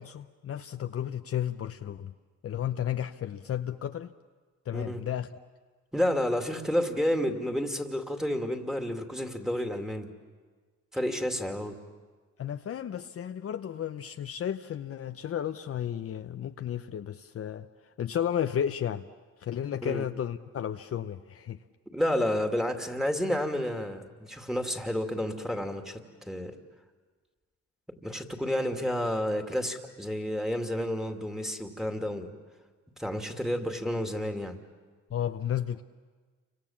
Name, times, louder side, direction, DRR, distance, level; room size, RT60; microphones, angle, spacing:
voice 1, 0.0-2.1 2.4-4.1 4.7-5.3 12.4-17.7 18.0-19.1 19.4-21.6 35.1-35.8, left 9 dB, 50° left, 8 dB, 0.8 m, -33 dB
voice 2, 5.9-10.1 10.9-11.8 19.8-20.0 21.9-26.6 28.0-32.3 33.0-34.5, equal, ahead, 4 dB, 2.6 m, -30 dB
29.5 x 25.5 x 7.3 m, 1.4 s
cardioid pair, 90°, 30 cm